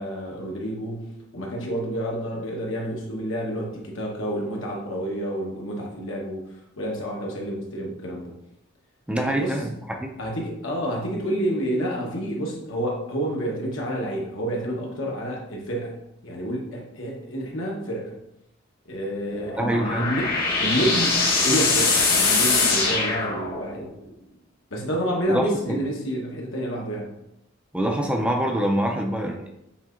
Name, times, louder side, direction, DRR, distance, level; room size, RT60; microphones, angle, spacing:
voice 1, 0.0-6.5 6.8-8.4 9.2-9.6 10.2-16.0 16.2-18.2 18.9-24.0 24.7-27.1, right 1 dB, 75° left, -1 dB, 1.1 m, -29 dB
voice 2, 9.1-9.7 10.0-10.1 19.6-20.1 25.3-25.8 27.7-29.5, right 1 dB, 5° right, 1 dB, 0.4 m, -25 dB
sound 1, 19.3-23.9, left 3 dB, 50° left, 1.2 m, -22 dB
7.1 x 2.8 x 2.5 m, 0.82 s
head